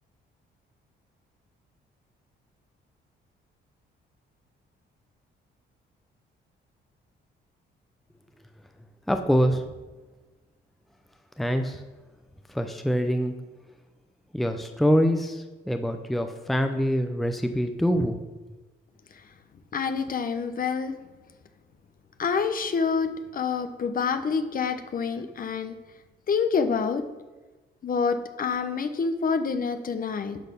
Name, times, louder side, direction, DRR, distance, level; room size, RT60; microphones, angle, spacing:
voice 1, 9.1-9.6 11.4-11.8 12.5-13.4 14.3-18.2, equal, ahead, 7 dB, 0.7 m, -24 dB
voice 2, 19.7-21.0 22.2-25.8 26.3-27.0 27.8-30.4, left 5 dB, 45° left, 9 dB, 1.0 m, -27 dB
10.5 x 4.1 x 6.9 m, 1.2 s
cardioid pair, 90°, 20 cm